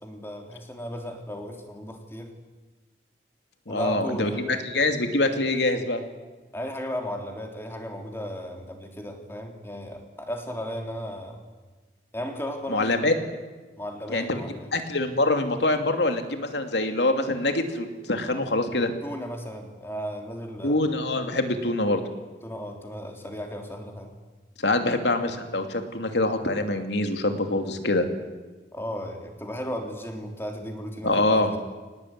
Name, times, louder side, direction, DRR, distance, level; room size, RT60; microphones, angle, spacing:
voice 1, 0.0-2.3 3.7-4.6 6.5-11.4 12.1-13.1 13.8-14.7 19.0-20.8 22.4-24.1 28.7-31.6, equal, 15° left, 3 dB, 3.3 m, -35 dB
voice 2, 3.7-6.0 12.7-13.1 14.1-14.4 14.7-18.9 20.6-22.0 24.6-28.1 31.0-31.5, left 2 dB, 80° left, 6 dB, 2.7 m, -25 dB
24.0 x 19.0 x 9.5 m, 1.3 s
head